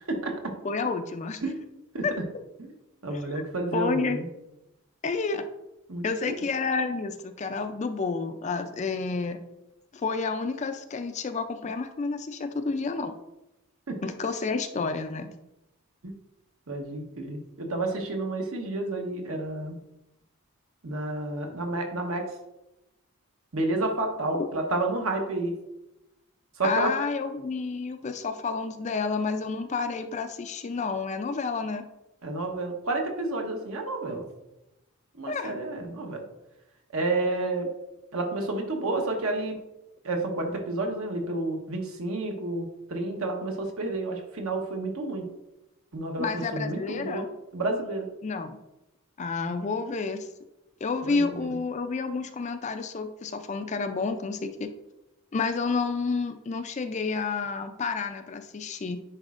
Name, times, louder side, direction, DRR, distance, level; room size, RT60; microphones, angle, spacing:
voice 1, 0.6-1.4 2.0-2.1 3.3-3.4 3.7-4.2 5.0-5.4 6.0-9.4 9.9-13.1 14.0-15.4 24.4-24.5 26.6-31.8 35.3-35.6 46.2-47.3 48.2-48.6 49.2-50.3 50.8-54.7 55.3-59.0, left 4 dB, 30° left, 8 dB, 0.3 m, -30 dB
voice 2, 3.0-4.3 5.9-6.0 13.9-14.0 16.0-16.2 16.7-19.8 20.8-22.3 23.5-25.5 26.6-26.9 32.2-34.2 35.1-36.2 36.9-37.7 38.1-39.6 40.0-45.3 45.9-47.2 47.5-48.1 51.0-51.6, right 2 dB, 70° right, 3 dB, 1.0 m, -30 dB
9.8 x 4.2 x 2.5 m, 0.93 s
head